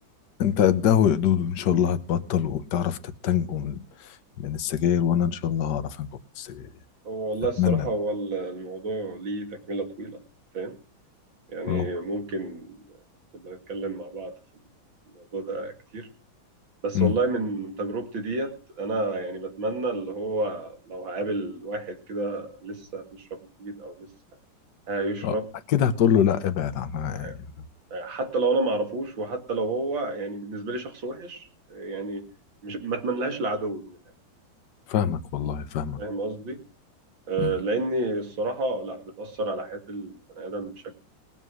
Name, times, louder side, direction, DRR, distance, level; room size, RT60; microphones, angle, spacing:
voice 1, 0.4-3.0 3.2-6.1 6.4-6.7 7.6-7.9 11.7-11.9 16.9-17.1 25.2-25.4 25.7-27.3 34.9-36.0 37.4-37.5, left 9 dB, 60° left, 1.6 m, -24 dB
voice 2, 7.0-10.2 10.5-10.8 11.5-13.0 13.4-14.4 15.1-16.1 16.8-24.1 24.9-25.5 27.1-27.3 27.9-32.2 32.6-34.0 36.0-36.6 37.3-40.9, right 2 dB, 70° right, 3.2 m, -30 dB
20.0 x 7.5 x 6.3 m
omnidirectional pair, 2.2 m